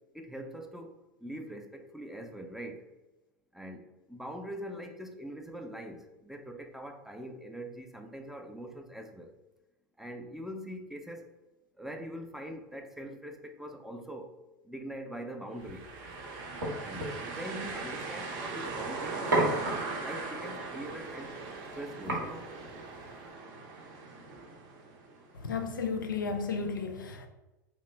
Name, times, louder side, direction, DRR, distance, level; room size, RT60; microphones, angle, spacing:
voice 1, 0.1-0.9 1.2-2.9 3.5-9.3 10.0-11.3 11.8-14.4 14.6-15.9 16.8-19.7 20.0-21.3 21.8-22.5, right 1 dB, 5° right, 0.3 m, -43 dB
sound 1, 15.6-25.4, right 3 dB, 45° right, 0.6 m, -40 dB
sound 2, 15.6-23.3, right 1 dB, 90° right, 1.0 m, -36 dB
voice 2, 25.3-27.3, left 5 dB, 85° left, 0.4 m, -33 dB
2.8 x 2.0 x 3.2 m
hypercardioid pair, 90°, 10 cm